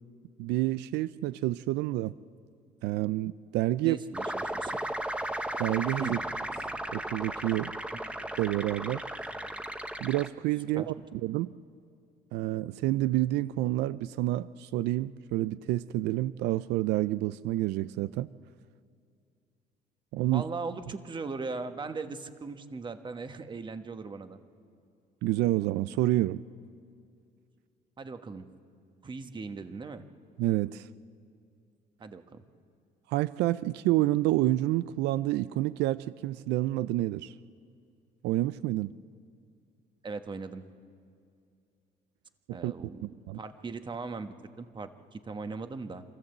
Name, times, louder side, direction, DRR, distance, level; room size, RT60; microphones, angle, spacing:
voice 1, 0.4-2.1 2.8-4.0 5.6-6.2 6.9-7.7 8.4-9.0 10.0-10.9 11.2-11.5 12.3-18.3 20.1-20.4 25.2-26.4 30.4-30.9 33.1-37.3 38.2-38.9 42.5-42.7 43.3-43.4, right 16 dB, 85° right, 16 dB, 0.4 m, -28 dB
voice 2, 3.8-4.8 6.0-6.2 10.7-10.9 20.3-24.4 28.0-28.5 29.0-30.0 32.0-32.4 40.0-40.6 42.5-46.0, right 4 dB, 25° right, 8 dB, 1.3 m, -39 dB
sound 1, 4.1-10.3, right 1 dB, 5° right, 1.0 m, -35 dB
27.0 x 14.0 x 8.0 m, 2.4 s
cardioid pair, 110°, 17 cm